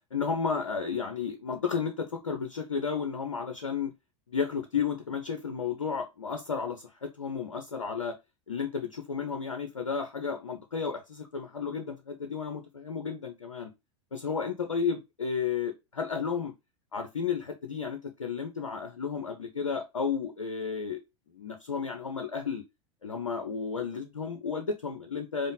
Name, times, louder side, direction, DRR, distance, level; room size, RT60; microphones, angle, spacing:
voice 1, 0.1-3.9 4.3-8.2 8.5-13.7 14.1-16.5 16.9-21.0 21.3-22.6 23.0-25.5, left 6 dB, 75° left, 0.7 m, -32 dB
5.1 x 2.1 x 4.0 m
figure-of-eight pair, 85°, 16 cm